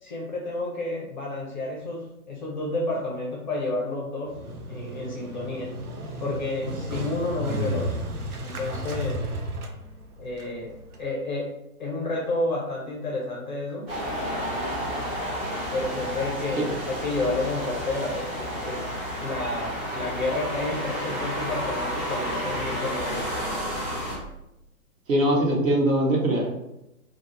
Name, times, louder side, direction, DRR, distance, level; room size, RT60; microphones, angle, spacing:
voice 1, 0.0-4.4 4.7-5.7 6.2-8.0 8.4-9.2 10.2-11.5 11.8-13.9 15.7-18.9 19.2-23.3, left 2 dB, 35° left, -3 dB, 0.5 m, -30 dB
Motorcycle, 4.3-11.0, right 1 dB, 90° right, 0.7 m, -33 dB
sound 1, 13.9-24.2, equal, 15° right, 0.7 m, -31 dB
voice 2, 25.1-26.5, right 1 dB, 65° right, -1 dB, 0.9 m, -22 dB
2.3 x 2.1 x 3.0 m, 0.88 s
figure-of-eight pair, 125°, 43 cm